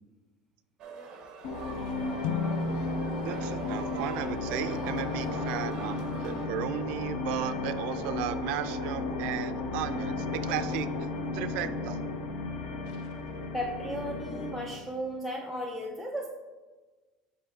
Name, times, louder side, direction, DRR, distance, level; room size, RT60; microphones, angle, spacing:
sound 1, 0.8-6.5, right 5 dB, 35° right, 0.9 m, -43 dB
sound 2, 1.4-14.8, left 3 dB, 90° left, 0.8 m, -34 dB
sound 3, 2.2-5.8, left 3 dB, 65° left, 0.4 m, -36 dB
voice 1, 3.2-11.1 11.3-12.0, right 10 dB, 60° right, 11 dB, 0.4 m, -35 dB
voice 2, 13.5-16.3, equal, 5° left, 0 dB, 0.5 m, -35 dB
8.7 x 5.6 x 2.4 m, 1.3 s
cardioid pair, 160°, 2 cm